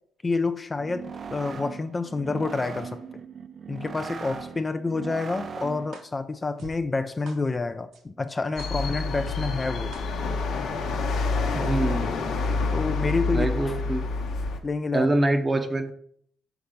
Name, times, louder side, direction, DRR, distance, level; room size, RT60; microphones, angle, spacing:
voice 1, 0.2-3.0 3.7-10.0 12.7-13.7 14.6-15.1, left 3 dB, 25° left, 0.4 m, -28 dB
sound 1, 0.7-6.0, right 6 dB, 50° right, 0.4 m, -39 dB
sound 2, 5.9-6.0 6.6-6.7 7.3-7.4 7.9-8.0 8.6-8.7 9.3-9.4 9.9-10.0, right 3 dB, 75° right, 1.3 m, -42 dB
sound 3, 8.6-14.6, left 3 dB, 75° left, 0.9 m, -27 dB
voice 2, 11.5-12.3 13.3-14.0 14.9-15.9, right 2 dB, 25° right, 0.8 m, -25 dB
5.9 x 4.2 x 5.1 m
cardioid pair, 90°, 0 cm